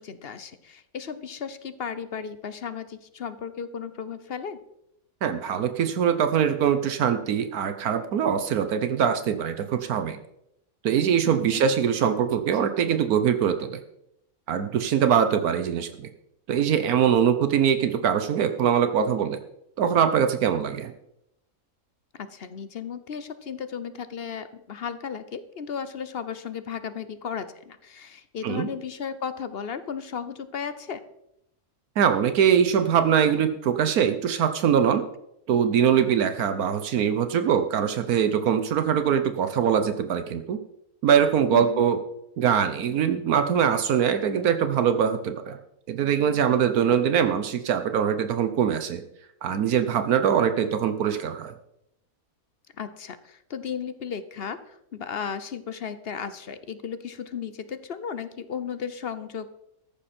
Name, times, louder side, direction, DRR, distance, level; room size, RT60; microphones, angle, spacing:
voice 1, 0.0-4.6 11.2-11.6 22.2-31.0 41.5-41.8 52.8-59.5, left 7 dB, 50° left, 12 dB, 0.9 m, -35 dB
voice 2, 5.2-10.2 10.8-13.8 14.5-16.1 16.5-19.4 19.8-20.9 28.4-28.7 32.0-35.0 35.5-40.6 41.0-42.0 42.4-45.6 45.9-49.0 49.4-51.5, right 8 dB, 80° right, 8 dB, 1.3 m, -23 dB
14.0 x 10.5 x 4.3 m, 0.80 s
omnidirectional pair, 1.6 m